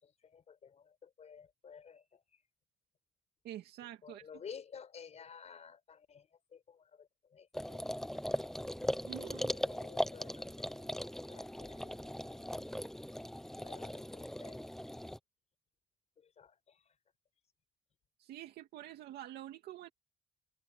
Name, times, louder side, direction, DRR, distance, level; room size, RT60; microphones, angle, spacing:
voice 1, 0.0-2.4 4.0-7.9 8.1-8.7 9.2-12.5 13.6-14.7 16.2-17.0, left 7 dB, 40° left, 5.2 m, -54 dB
voice 2, 3.4-4.2 9.0-9.5 18.2-19.9, right 13 dB, 75° right, 2.3 m, -47 dB
sound 1, 7.5-15.2, equal, ahead, 0.9 m, -39 dB
cardioid pair, 110°, 17 cm